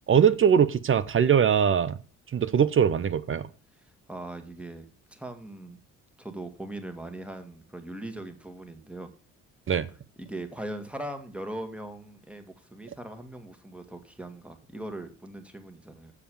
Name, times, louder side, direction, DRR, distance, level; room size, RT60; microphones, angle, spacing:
voice 1, 0.1-2.0 2.3-3.5 9.7-9.9, right 8 dB, 30° right, 0.7 m, -21 dB
voice 2, 4.1-5.8 6.2-9.1 10.2-16.1, right 1 dB, 5° right, 2.0 m, -40 dB
7.4 x 6.9 x 6.8 m
hypercardioid pair, 50°, 39 cm